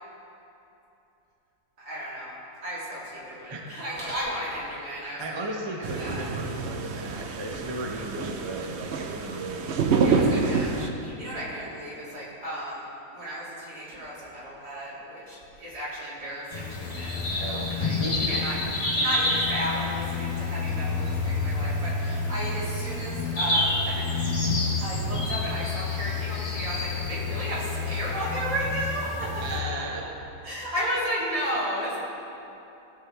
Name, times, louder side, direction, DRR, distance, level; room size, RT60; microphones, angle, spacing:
voice 1, 1.8-2.3 2.6-6.3 10.0-12.8 13.1-24.4 24.8-29.4 30.4-32.0, equal, 80° right, -9 dB, 3.5 m, -34 dB
voice 2, 5.2-9.8 10.1-10.9 17.4-17.7 18.0-18.8 29.4-30.0, right 1 dB, 20° right, 0 dB, 0.8 m, -35 dB
sound 1, 5.8-10.9, right 4 dB, 60° right, 0.7 m, -27 dB
sound 2, 16.5-29.6, left 3 dB, 80° left, 2.3 m, -28 dB
18.0 x 6.7 x 3.4 m, 2.9 s
omnidirectional pair, 1.7 m